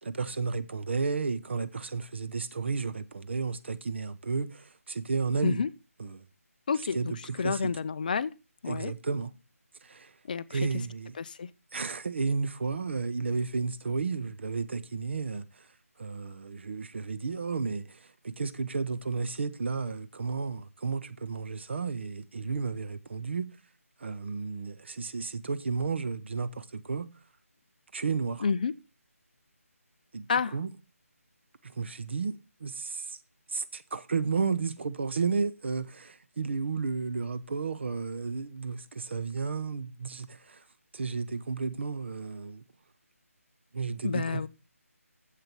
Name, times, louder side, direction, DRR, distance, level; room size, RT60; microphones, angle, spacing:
voice 1, 0.0-5.6 6.0-6.3 6.9-7.7 8.7-9.3 9.8-10.1 10.5-11.2 11.7-15.7 16.0-23.6 24.0-27.1 27.9-28.5 30.1-30.7 31.6-33.2 33.5-40.6 40.9-42.6 43.7-44.5, right 4 dB, 50° right, 0.8 m, -32 dB
voice 2, 6.7-8.3 8.6-8.9 10.3-10.6 11.2-11.5 28.4-28.7 30.3-30.5 44.0-44.5, left 5 dB, 35° left, 0.4 m, -29 dB
7.6 x 6.6 x 5.9 m
figure-of-eight pair, 155°, 8 cm